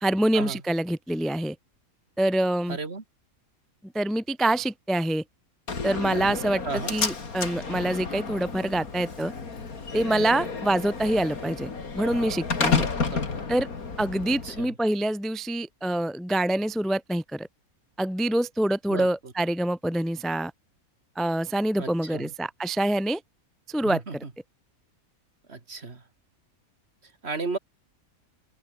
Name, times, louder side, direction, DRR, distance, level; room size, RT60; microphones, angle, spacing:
voice 1, 0.0-1.6 2.2-2.8 3.9-5.2 5.8-9.3 9.9-11.7 12.0-12.9 13.5-13.7 14.0-17.5 18.0-20.5 21.2-23.2 23.7-24.2, right 1 dB, ahead, 0.4 m, -26 dB
voice 2, 2.7-3.0 6.6-7.0 13.1-13.3 14.4-14.7 18.9-19.3 21.8-22.3 23.8-24.3 25.5-26.0 27.2-27.6, right 3 dB, 45° right, 2.6 m, -34 dB
Slam, 5.7-14.7, left 4 dB, 80° left, 3.1 m, -31 dB
omnidirectional pair, 1.5 m